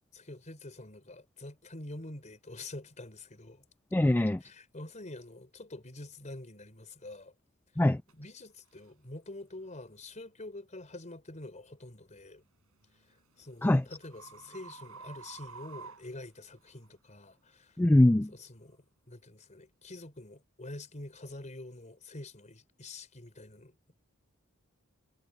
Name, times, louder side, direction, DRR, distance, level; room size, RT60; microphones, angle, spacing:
voice 1, 0.1-3.6 4.4-7.3 7.7-7.8 8.1-12.4 13.1-17.8 18.3-23.9, left 2 dB, 35° left, 4.3 m, -46 dB
voice 2, 3.9-4.4 7.8-8.0 13.6-13.8 17.8-18.3, left 1 dB, 10° left, 0.3 m, -23 dB
sound 1, 8.1-8.2 8.8-9.0 9.6-9.8 12.4-16.9, right 5 dB, 75° right, 6.2 m, -51 dB
head